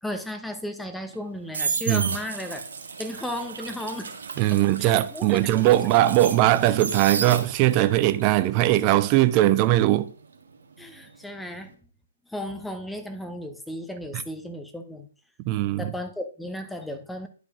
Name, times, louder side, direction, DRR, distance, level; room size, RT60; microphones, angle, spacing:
voice 1, 0.0-2.6 3.0-4.2 4.5-5.9 10.8-11.8 12.3-15.1 15.8-17.3, left 1 dB, 5° left, 0.7 m, -35 dB
sound 1, 1.1-7.9 8.2-11.1 11.4-11.7, right 5 dB, 70° right, 1.1 m, -33 dB
voice 2, 4.4-10.1 14.1-14.2 15.5-15.9, right 15 dB, 35° right, 0.4 m, -20 dB
10.5 x 4.9 x 2.4 m
figure-of-eight pair, 125°, 0 cm